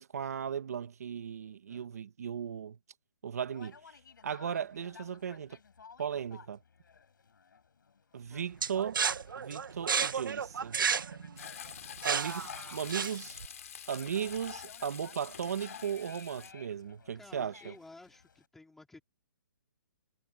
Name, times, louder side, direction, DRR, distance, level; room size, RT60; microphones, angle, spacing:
voice 1, 0.0-2.8 3.2-3.8 4.2-5.6 6.0-6.6 8.1-9.0 9.4-10.8 12.0-13.4 13.9-17.7, right 8 dB, 50° right, 1.2 m, -36 dB
Conversation, 3.4-18.5, left 6 dB, 70° left, 7.4 m, -57 dB
sound 1, 8.6-13.5, right 6 dB, 80° right, 1.1 m, -32 dB
Frying (food), 11.4-16.5, left 9 dB, 45° left, 3.0 m, -46 dB
voice 2, 17.1-19.0, left 2 dB, 5° left, 3.8 m, -54 dB
hypercardioid pair, 175°, 11 cm